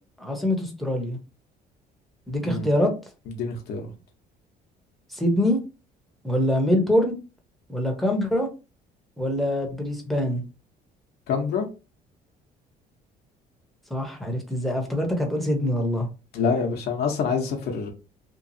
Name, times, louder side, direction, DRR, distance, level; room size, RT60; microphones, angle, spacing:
voice 1, 0.2-1.2 2.3-2.9 5.1-5.6 6.2-7.1 7.7-8.5 9.2-10.4 13.9-16.1, left 1 dB, ahead, 0.8 m, -24 dB
voice 2, 3.4-3.9 11.3-11.7 16.3-17.9, left 5 dB, 70° left, 0.7 m, -26 dB
2.9 x 2.3 x 2.6 m
cardioid pair, 110°, 17 cm